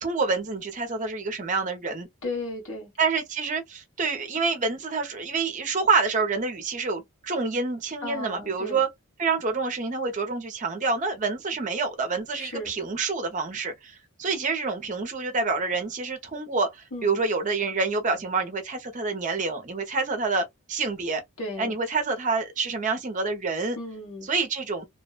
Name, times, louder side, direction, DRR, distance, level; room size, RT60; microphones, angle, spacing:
voice 1, 0.0-2.1 3.0-8.9 9.2-21.2 21.6-23.8 24.3-24.9, right 4 dB, 35° right, 0.5 m, -27 dB
voice 2, 2.2-2.9 8.0-8.8 12.3-12.7 16.9-17.2 21.4-21.7 23.8-24.3, left 2 dB, 70° left, 1.3 m, -35 dB
2.7 x 2.0 x 2.2 m
head